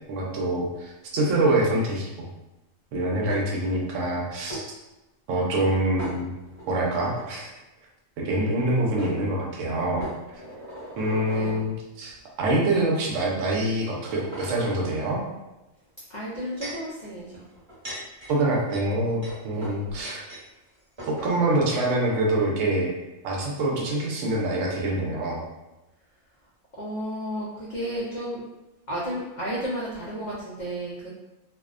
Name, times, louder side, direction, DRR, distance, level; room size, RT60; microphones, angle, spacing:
voice 1, 0.1-2.3 2.9-4.6 5.3-6.3 6.7-7.5 8.2-10.1 11.0-12.1 12.4-15.2 18.3-20.2 21.1-22.9 23.2-25.4, right 1 dB, 70° right, -3 dB, 0.9 m, -25 dB
sound 1, 3.3-3.8 4.5-4.6 6.0-6.6 7.1-7.2 8.5-8.6 9.0-9.1 10.0-11.6 12.4-12.5 13.2-13.3 13.8-15.0 16.1-16.9 17.5-20.4 20.7-20.8 21.0-21.3, right 1 dB, 25° right, 0.9 m, -39 dB
voice 2, 11.3-11.6 16.1-17.4 19.5-19.9 26.8-28.4 28.9-31.1, equal, 75° left, -7 dB, 0.4 m, -33 dB
2.6 x 2.1 x 2.4 m, 1.0 s
omnidirectional pair, 1.4 m